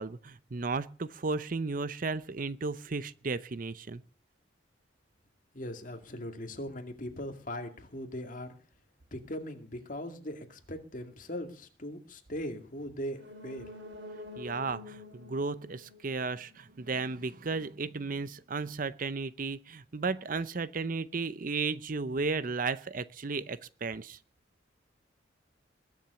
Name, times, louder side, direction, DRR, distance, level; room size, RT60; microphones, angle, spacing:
voice 1, 0.0-4.0 14.4-24.2, right 4 dB, 45° right, 16 dB, 0.6 m, -34 dB
voice 2, 5.5-8.5 9.1-13.7, equal, 45° left, 6 dB, 2.3 m, -40 dB
sound 1, 13.1-16.8 17.1-17.2, left 2 dB, 70° right, 2.8 m, -47 dB
21.0 x 7.4 x 6.9 m, 0.40 s
head